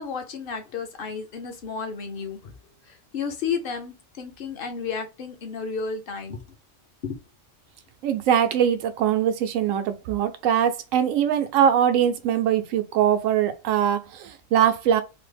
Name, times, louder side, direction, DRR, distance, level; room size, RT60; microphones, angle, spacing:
voice 1, 0.0-2.5 2.9-6.4 7.0-7.2, left 5 dB, 50° left, 0.8 m, -32 dB
voice 2, 8.0-15.0, right 9 dB, 85° right, 1.0 m, -22 dB
3.2 x 2.0 x 3.2 m
omnidirectional pair, 1.3 m